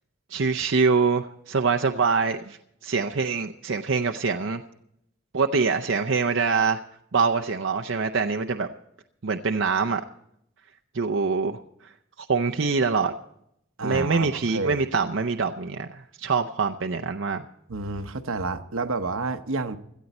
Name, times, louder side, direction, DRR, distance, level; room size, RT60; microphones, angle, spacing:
voice 1, 0.3-4.6 5.3-6.8 7.1-8.7 9.2-10.0 10.9-11.9 12.2-13.1 13.8-17.4, right 4 dB, 60° right, 4 dB, 0.6 m, -24 dB
voice 2, 13.8-14.8 17.7-19.8, right 3 dB, 75° right, 8 dB, 1.0 m, -29 dB
17.5 x 13.5 x 4.2 m, 0.76 s
head